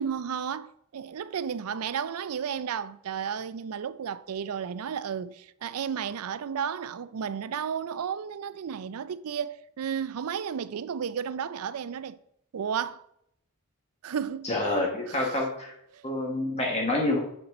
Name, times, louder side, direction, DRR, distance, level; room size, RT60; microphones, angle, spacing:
voice 1, 0.0-12.2 12.5-13.0 14.0-14.8 15.1-15.4 15.9-16.1, right 7 dB, 85° right, 0.4 m, -33 dB
voice 2, 14.4-15.7 16.0-17.2, left 2 dB, 30° left, 1.2 m, -27 dB
8.4 x 4.4 x 5.4 m
head